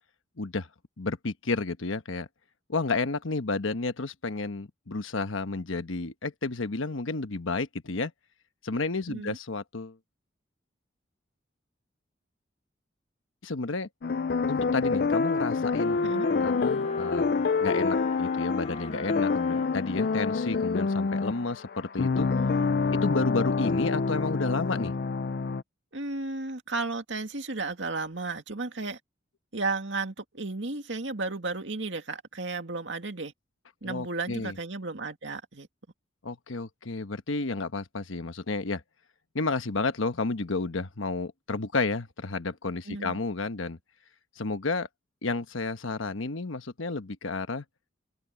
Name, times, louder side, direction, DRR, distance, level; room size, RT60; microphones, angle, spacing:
voice 1, 0.4-0.7 1.0-2.3 2.7-8.1 8.6-10.0 13.4-13.9 14.5-16.1 16.4-22.3 22.9-24.9 33.8-34.6 36.2-38.8 39.3-43.8 44.4-44.9 45.2-47.6, left 3 dB, 85° left, 1.2 m, -31 dB
sound 1, 14.0-25.6, left 4 dB, 50° left, 0.4 m, -27 dB
Wind instrument woodwind instrument, 15.5-20.9, left 3 dB, 30° left, 0.8 m, -41 dB
voice 2, 25.9-29.0 29.5-33.3 33.8-35.7 42.9-43.2, right 3 dB, 70° right, 2.2 m, -33 dB
head